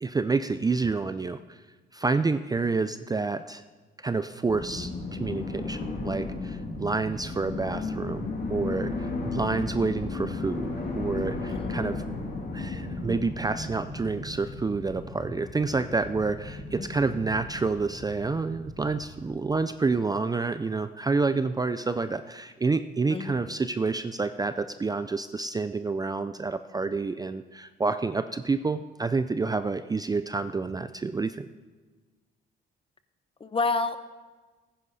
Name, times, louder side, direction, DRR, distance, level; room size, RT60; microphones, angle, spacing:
voice 1, 0.0-1.6 1.9-3.6 4.0-4.9 5.2-12.0 12.5-31.5, right 4 dB, 20° right, 11 dB, 0.4 m, -28 dB
sound 1, 4.4-19.3, left 3 dB, 50° left, 3.1 m, -35 dB
voice 2, 11.5-11.9 16.8-16.9 23.1-23.3 33.4-34.0, left 3 dB, 25° left, 11 dB, 0.8 m, -29 dB
14.5 x 10.0 x 4.1 m, 1.3 s
cardioid pair, 90°, 20 cm